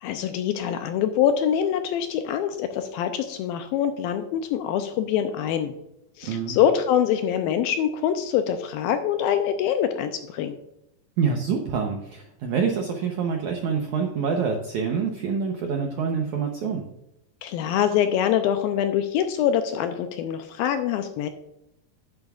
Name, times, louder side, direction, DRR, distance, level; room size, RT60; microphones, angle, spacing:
voice 1, 0.0-5.8 6.2-10.6 17.4-21.3, left 9 dB, 80° left, 8 dB, 2.2 m, -24 dB
voice 2, 6.2-6.6 11.2-16.8, right 6 dB, 80° right, 2 dB, 1.7 m, -26 dB
10.5 x 10.5 x 2.4 m, 0.84 s
omnidirectional pair, 4.7 m